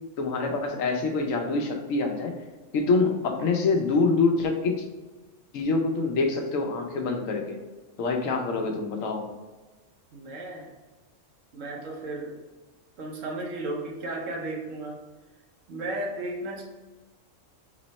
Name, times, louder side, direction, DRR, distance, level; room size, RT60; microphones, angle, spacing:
voice 1, 0.2-2.3 2.7-4.7 5.5-7.6 8.0-9.3, left 3 dB, 85° left, 3 dB, 1.1 m, -25 dB
voice 2, 10.1-10.7 11.5-12.4 13.0-15.0 15.7-16.6, right 2 dB, 75° right, 0 dB, 1.2 m, -34 dB
3.7 x 3.1 x 4.0 m, 1.2 s
omnidirectional pair, 1.3 m